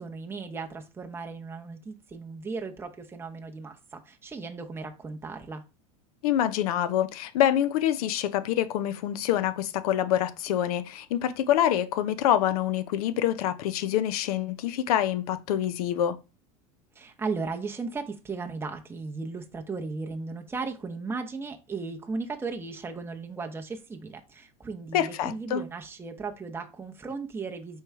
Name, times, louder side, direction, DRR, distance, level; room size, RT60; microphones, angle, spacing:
voice 1, 0.0-5.6 17.0-27.8, right 4 dB, 15° right, 0.7 m, -36 dB
voice 2, 6.2-16.2 24.9-25.6, left 11 dB, 85° left, 0.6 m, -26 dB
4.5 x 3.0 x 3.5 m
supercardioid pair, 120°, 19 cm